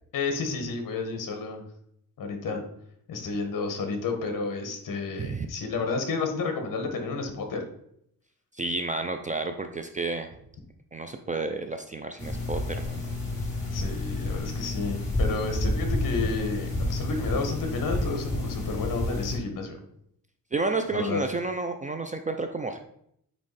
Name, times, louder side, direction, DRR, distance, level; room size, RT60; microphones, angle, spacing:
voice 1, 0.1-1.6 2.2-2.6 3.1-7.6 13.7-19.8 20.9-21.2, left 4 dB, 60° left, 4 dB, 1.5 m, -31 dB
voice 2, 8.5-10.3 10.9-13.1 18.0-18.1 20.5-22.8, right 3 dB, 20° right, 6 dB, 0.4 m, -31 dB
sound 1, 12.2-19.4, left 2 dB, 20° left, 2.3 m, -30 dB
8.7 x 3.1 x 4.1 m, 0.71 s
cardioid pair, 145°, 37 cm